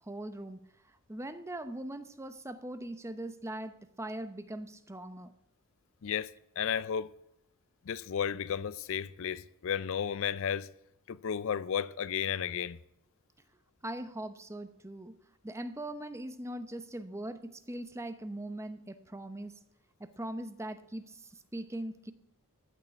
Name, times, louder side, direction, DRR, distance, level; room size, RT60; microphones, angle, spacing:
voice 1, 0.0-0.6 0.8-5.3 13.8-15.1 15.4-19.5 20.0-22.1, right 1 dB, 15° right, 0.7 m, -41 dB
voice 2, 6.6-7.1 7.9-10.7 11.1-12.8, left 8 dB, 60° left, 0.4 m, -33 dB
14.5 x 6.7 x 9.6 m
head